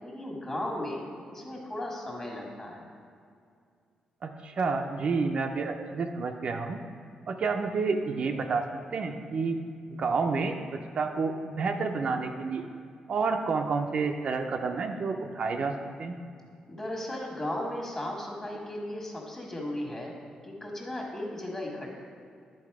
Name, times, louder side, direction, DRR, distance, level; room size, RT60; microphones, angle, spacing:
voice 1, 0.0-1.0 1.3-2.9 16.7-20.1 20.4-22.0, left 1 dB, 20° left, -1 dB, 1.6 m, -36 dB
voice 2, 4.2-6.8 7.3-8.6 8.9-9.6 9.9-10.6 10.9-12.6 13.1-16.1, right 4 dB, 50° right, 4 dB, 0.5 m, -29 dB
10.0 x 4.1 x 4.7 m, 2.3 s
cardioid pair, 110°, 2 cm